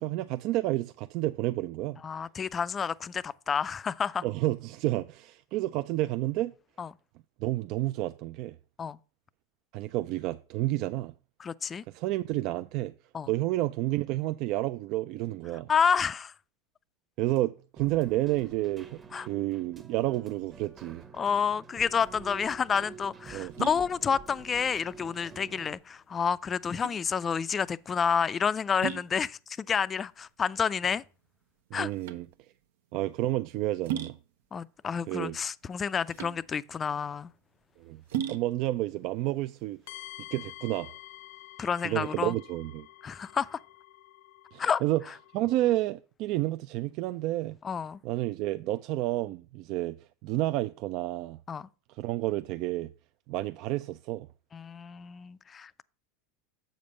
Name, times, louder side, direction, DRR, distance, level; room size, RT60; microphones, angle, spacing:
voice 1, 0.0-2.0 4.2-6.5 7.4-8.6 9.7-11.1 11.9-12.9 13.3-15.7 17.2-21.0 23.3-23.5 31.7-32.3 32.9-34.2 35.1-35.4 37.8-38.0 38.3-39.8 40.3-40.9 41.8-42.9 44.5-45.0 45.3-47.6 48.0-51.4 51.9-52.9 53.3-54.3, right 16 dB, 55° right, 0.3 m, -30 dB
voice 2, 2.0-4.2 6.8-6.9 8.8-9.0 11.4-11.8 13.1-13.3 15.7-16.3 19.1-19.3 21.2-31.0 31.7-31.9 34.5-37.3 41.6-42.3 43.0-43.6 44.6-44.8 47.6-48.0 51.5-51.7 54.5-55.8, left 6 dB, 25° left, 0.3 m, -29 dB
Keyboard (musical), 17.8-25.8, right 6 dB, 25° right, 1.0 m, -49 dB
sound 1, 22.0-40.5, right 11 dB, 80° right, 0.7 m, -41 dB
sound 2, 39.9-45.8, left 16 dB, 75° left, 0.6 m, -49 dB
7.6 x 5.2 x 5.3 m
supercardioid pair, 110°, 0 cm